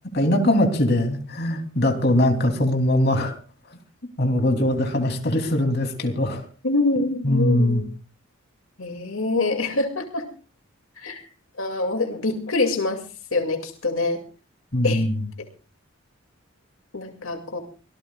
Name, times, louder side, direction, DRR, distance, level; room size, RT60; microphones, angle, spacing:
voice 1, 0.1-3.4 4.2-6.4 7.2-7.8 14.7-15.3, left 1 dB, 50° left, 4 dB, 3.1 m, -21 dB
voice 2, 6.6-7.9 8.8-10.3 11.0-11.2 11.6-13.0 13.3-14.2 14.8-15.0 16.9-17.6, left 2 dB, 80° left, 4 dB, 2.4 m, -25 dB
24.5 x 18.0 x 2.4 m, 0.36 s
head